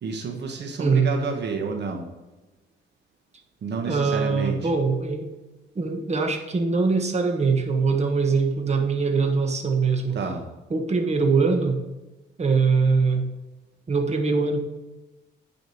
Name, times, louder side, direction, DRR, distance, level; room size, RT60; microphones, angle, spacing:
voice 1, 0.0-2.1 3.6-4.7 10.1-10.4, right 4 dB, 60° right, 3 dB, 1.3 m, -30 dB
voice 2, 3.9-5.3 5.7-10.2 10.7-11.8 12.4-13.3 13.9-14.6, right 4 dB, 35° right, 4 dB, 1.5 m, -22 dB
9.6 x 5.1 x 5.0 m, 1.1 s
cardioid pair, 90°, 20 cm